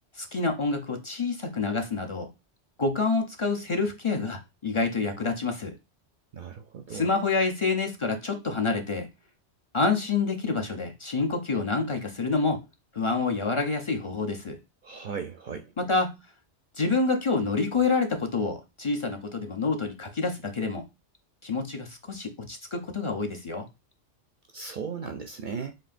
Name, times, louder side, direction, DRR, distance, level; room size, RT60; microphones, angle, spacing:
voice 1, 0.2-2.3 2.8-5.7 6.9-9.1 9.7-12.6 12.9-14.6 15.8-16.2 16.8-20.8 21.4-23.7, left 4 dB, 35° left, 0.5 m, -27 dB
voice 2, 6.3-7.1 14.8-15.7 24.5-25.7, right 6 dB, 60° right, 0.5 m, -36 dB
7.5 x 2.8 x 2.5 m
omnidirectional pair, 1.3 m